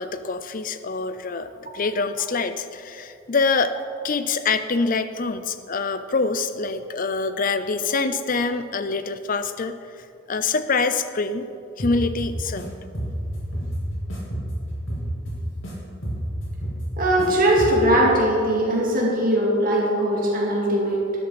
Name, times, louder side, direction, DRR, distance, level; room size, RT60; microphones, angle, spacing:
voice 1, 0.0-3.8 4.0-9.8 10.3-11.5 11.8-12.7, left 4 dB, 40° left, 11 dB, 0.5 m, -25 dB
sound 1, 11.8-12.6 12.9-15.7 16.0-17.3 17.6-18.0, right 1 dB, 70° left, 3.2 m, -29 dB
voice 2, 17.0-21.1, right 1 dB, 45° right, -3 dB, 2.2 m, -20 dB
12.5 x 11.0 x 4.2 m, 2.5 s
head